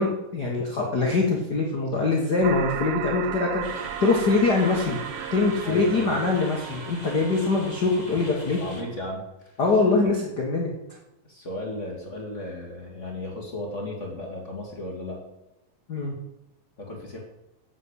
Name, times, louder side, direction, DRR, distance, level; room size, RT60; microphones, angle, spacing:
voice 1, 0.0-5.0 5.3-8.6 9.6-10.7 15.9-16.1, left 3 dB, 70° left, -1 dB, 0.9 m, -23 dB
sound 1, 2.4-8.9, right 10 dB, 90° right, 2.5 m, -36 dB
sound 2, 3.6-8.8, left 2 dB, 15° left, 1.5 m, -43 dB
voice 2, 5.6-6.1 8.1-8.2 8.6-9.6 11.3-15.2 16.8-17.2, left 1 dB, 35° left, -1 dB, 1.2 m, -35 dB
8.4 x 7.2 x 8.0 m, 0.94 s
omnidirectional pair, 4.2 m